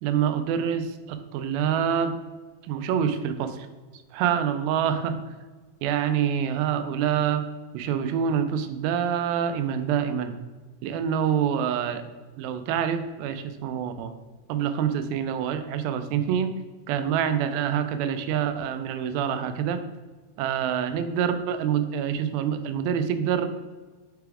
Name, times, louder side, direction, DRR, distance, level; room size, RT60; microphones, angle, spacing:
voice 1, 0.0-2.2 2.6-3.7 4.1-5.3 5.8-7.4 7.7-10.3 10.8-12.0 12.4-14.1 14.5-16.5 16.9-19.8 20.4-23.5, right 8 dB, 85° right, 9 dB, 2.4 m, -26 dB
5.9 x 3.4 x 4.7 m, 1.3 s
omnidirectional pair, 4.2 m